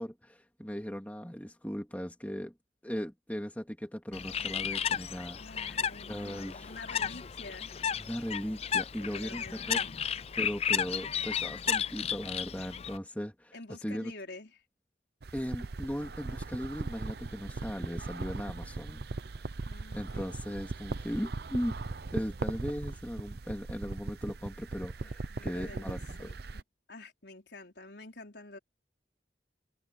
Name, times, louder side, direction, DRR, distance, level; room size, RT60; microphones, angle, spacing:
voice 1, 0.0-2.5 2.8-5.7 6.1-6.7 8.0-9.8 10.4-13.5 13.8-14.1 15.3-19.0 19.4-19.5 19.9-21.7 22.1-26.3, equal, 10° left, 2.6 m, -38 dB
Bird, 4.1-13.0, left 8 dB, 35° left, 0.4 m, -33 dB
voice 2, 5.4-7.8 9.0-10.0 13.5-14.5 19.7-20.3 25.0-26.6 26.9-28.6, left 2 dB, 65° left, 4.6 m, -48 dB
sound 1, 15.2-26.6, right 3 dB, 55° right, 0.6 m, -39 dB
head